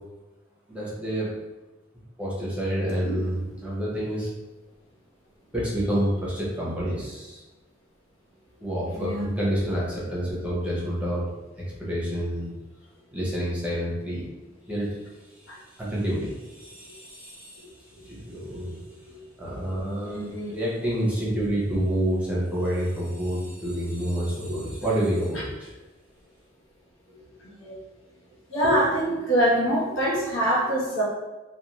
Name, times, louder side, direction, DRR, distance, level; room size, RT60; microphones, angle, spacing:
voice 1, 0.7-1.4 2.2-4.3 5.5-7.4 8.6-11.3 11.5-12.5 13.1-14.2 14.7-15.0 15.4-15.5 15.8-17.7 18.0-18.8 19.4-25.7, equal, 5° right, -7 dB, 0.8 m, -28 dB
voice 2, 8.9-9.3 18.3-18.6 20.0-20.5 24.4-24.5 27.6-27.7 28.5-31.0, right 1 dB, 80° left, -4 dB, 0.9 m, -25 dB
2.5 x 2.3 x 3.0 m, 1.1 s
head